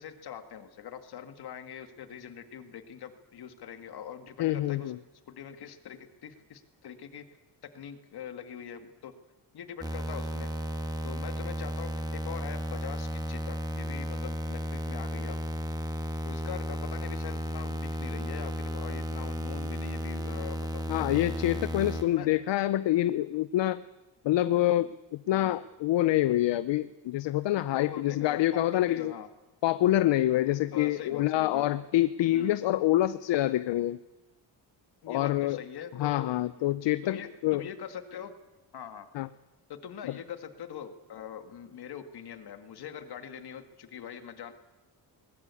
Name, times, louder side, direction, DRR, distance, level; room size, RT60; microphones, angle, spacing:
voice 1, 0.0-4.9 5.3-7.2 7.7-9.1 9.5-10.5 11.0-15.4 16.2-21.0 21.4-21.5 22.0-22.3 25.3-25.6 27.5-29.3 30.7-31.7 32.2-32.6 35.0-36.4 37.0-38.3 38.7-39.1 39.7-44.5, left 8 dB, 60° left, 9 dB, 2.0 m, -43 dB
voice 2, 4.4-5.0 20.9-23.8 24.2-29.1 29.6-34.0 35.1-35.6 35.9-37.6 39.1-39.3 40.0-40.2, left 14 dB, 80° left, 15 dB, 0.7 m, -26 dB
sound 1, 9.8-22.0, equal, 10° right, 1.7 m, -34 dB
21.5 x 20.5 x 8.4 m, 1.1 s
wide cardioid pair, 180°, 43 cm